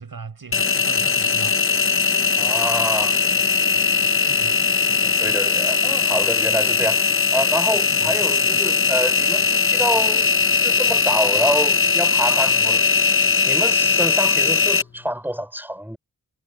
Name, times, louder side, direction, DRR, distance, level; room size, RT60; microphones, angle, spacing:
voice 1, 0.0-1.6 4.3-4.6 7.9-8.2, right 5 dB, 80° right, 5.5 m, -38 dB
Engine, 0.5-14.8, left 5 dB, 40° left, 0.9 m, -19 dB
voice 2, 2.3-3.2 5.0-10.3 10.6-12.8 13.4-16.0, equal, 5° right, 5.7 m, -27 dB
cardioid pair, 50°, 35 cm